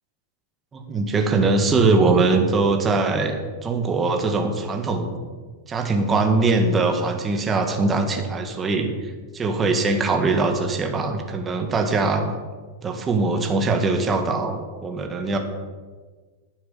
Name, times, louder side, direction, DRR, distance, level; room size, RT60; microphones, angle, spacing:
voice 1, 0.7-3.3 3.6-5.1 5.7-12.2 12.8-15.4, right 3 dB, 20° right, 4 dB, 1.9 m, -22 dB
11.0 x 9.5 x 7.2 m, 1.4 s
supercardioid pair, 145°, 0 cm